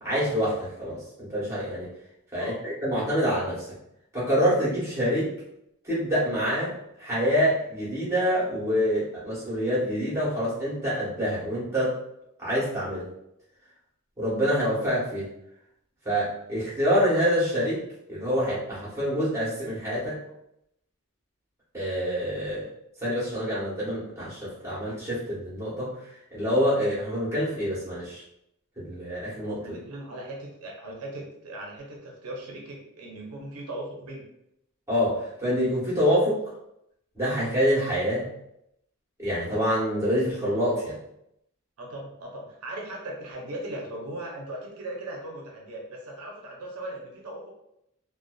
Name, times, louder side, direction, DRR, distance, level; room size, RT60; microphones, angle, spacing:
voice 1, 0.0-1.9 2.3-3.7 4.1-5.3 5.8-6.7 7.0-12.0 12.4-13.0 14.2-15.3 16.0-17.8 18.1-20.2 21.7-22.6 23.0-25.9 26.3-28.2 28.8-29.8 34.9-36.4 37.1-38.2 39.2-41.0, equal, 15° right, -8 dB, 1.0 m, -26 dB
voice 2, 29.6-34.3 41.8-47.5, right 1 dB, 90° right, -1 dB, 0.6 m, -38 dB
2.5 x 2.2 x 2.3 m, 0.79 s
head